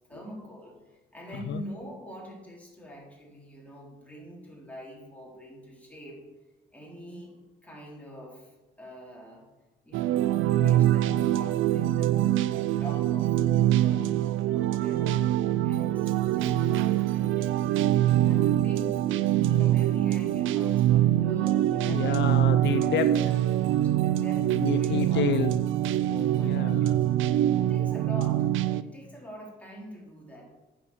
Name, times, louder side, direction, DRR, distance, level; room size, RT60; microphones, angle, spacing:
voice 1, 0.1-6.2 6.7-7.3 7.6-9.5 9.8-13.4 13.8-15.2 15.6-19.0 19.6-22.2 22.8-23.1 23.7-25.3 26.1-26.9 27.5-28.5 28.8-30.4, equal, 5° left, -3 dB, 4.0 m, -44 dB
sound 1, 9.9-28.8, right 13 dB, 80° right, 0.5 m, -24 dB
voice 2, 21.8-23.1 24.6-25.6 26.4-27.0, left 10 dB, 65° left, 11 dB, 0.5 m, -29 dB
8.7 x 7.0 x 7.3 m, 1.1 s
cardioid pair, 90°, 20 cm